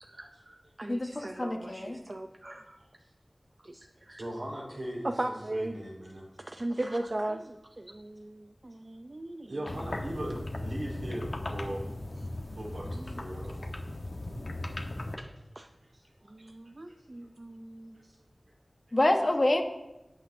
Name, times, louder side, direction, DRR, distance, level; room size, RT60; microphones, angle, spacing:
voice 1, 0.0-2.8 3.6-4.2 5.0-5.8 6.5-9.5 12.5-12.6 12.9-13.2 15.6-15.7 16.3-17.9, right 1 dB, 45° right, 5 dB, 0.6 m, -38 dB
voice 2, 0.9-2.0 18.9-19.6, left 1 dB, 50° left, 3 dB, 1.3 m, -27 dB
voice 3, 4.1-5.1 5.5-6.3 9.5-11.8 12.6-13.7 15.9-16.0 17.9-18.1, right 1 dB, 85° right, -5 dB, 4.3 m, -39 dB
sound 1, 9.7-15.2, left 1 dB, 75° left, 1.2 m, -37 dB
18.5 x 8.4 x 2.8 m, 0.96 s
wide cardioid pair, 50°, 0 cm